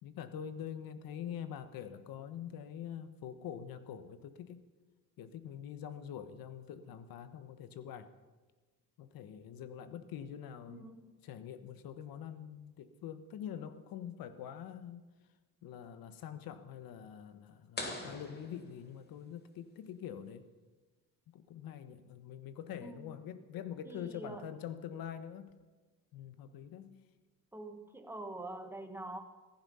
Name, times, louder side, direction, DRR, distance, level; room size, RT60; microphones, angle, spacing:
voice 1, 0.0-4.6 5.2-8.1 9.0-10.9 11.2-15.1 15.6-20.4 21.3-25.6 26.1-27.0, left 9 dB, 75° left, 11 dB, 1.3 m, -45 dB
voice 2, 10.7-11.2 22.8-23.2 23.8-24.5 27.5-29.2, right 2 dB, 5° right, 6 dB, 1.4 m, -45 dB
sound 1, 17.8-19.4, left 2 dB, 30° left, 2.3 m, -44 dB
15.5 x 15.0 x 5.6 m, 1.3 s
cardioid pair, 135°, 35 cm